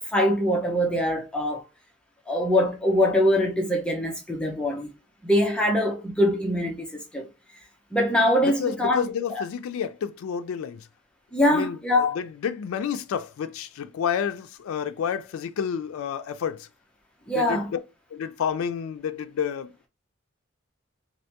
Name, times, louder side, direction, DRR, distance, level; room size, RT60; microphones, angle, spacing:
voice 1, 0.0-1.6 2.3-4.9 5.2-7.3 7.9-9.0 11.3-12.2 17.3-17.7, left 1 dB, 5° left, 0.5 m, -23 dB
voice 2, 8.4-10.9 11.5-16.7 17.3-17.8 18.1-19.9, left 7 dB, 85° left, 0.3 m, -30 dB
3.3 x 2.5 x 2.8 m
head